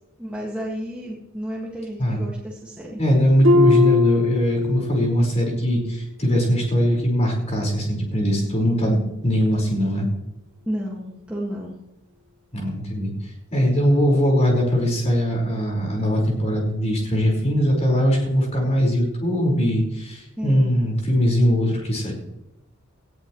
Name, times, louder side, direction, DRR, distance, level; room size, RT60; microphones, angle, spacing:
voice 1, 0.2-3.0 10.7-11.8 20.4-20.7, equal, 5° right, -5 dB, 2.0 m, -31 dB
voice 2, 3.0-10.1 12.5-13.1 13.5-22.1, equal, 35° left, 0 dB, 4.9 m, -21 dB
Harp, 3.4-5.2 5.6-6.0 6.5-6.6, left 4 dB, 65° right, 1.4 m, -20 dB
19.0 x 13.5 x 3.2 m, 0.90 s
head